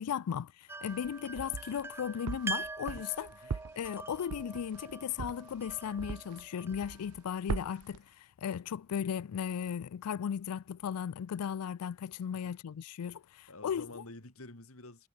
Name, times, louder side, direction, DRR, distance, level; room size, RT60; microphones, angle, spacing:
voice 1, 0.0-3.3 3.7-13.9, left 8 dB, 85° left, 0.4 m, -36 dB
sound 1, 0.7-7.6, right 3 dB, 10° right, 0.4 m, -44 dB
sound 2, 0.8-1.9 2.3-6.4 6.7-7.2 7.5-8.0, right 5 dB, 75° right, 0.5 m, -39 dB
voice 2, 13.5-15.1, left 2 dB, 70° left, 3.1 m, -49 dB
head